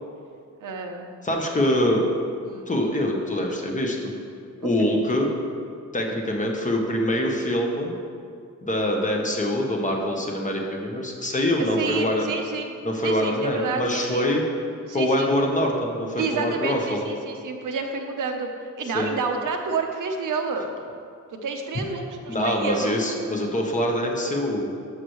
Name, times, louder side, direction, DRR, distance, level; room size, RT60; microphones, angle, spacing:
voice 1, 0.6-1.1 2.4-2.7 4.6-4.9 11.8-12.7 13.0-14.2 14.9-15.3 16.2-20.7 21.3-23.0, right 4 dB, 75° right, 3 dB, 0.9 m, -29 dB
voice 2, 1.2-2.0 2.7-4.1 4.6-5.3 5.9-8.0 8.6-12.3 12.8-14.4 14.9-17.1 18.9-19.1 22.3-24.7, left 1 dB, 25° left, 0 dB, 1.0 m, -24 dB
13.0 x 6.6 x 3.1 m, 2.4 s
wide cardioid pair, 150°, 31 cm